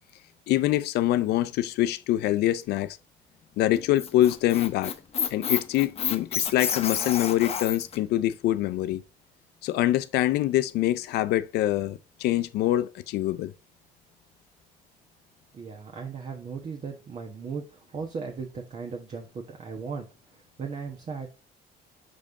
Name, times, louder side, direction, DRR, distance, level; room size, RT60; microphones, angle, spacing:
voice 1, 0.5-3.0 3.6-4.9 5.3-9.0 9.6-13.5, left 14 dB, 75° left, 0.5 m, -25 dB
Squeak, 3.7-8.0, left 7 dB, 35° left, 0.8 m, -30 dB
voice 2, 15.5-20.1 20.6-21.3, right 5 dB, 40° right, 1.2 m, -37 dB
5.6 x 5.2 x 3.6 m
cardioid pair, 110°, 17 cm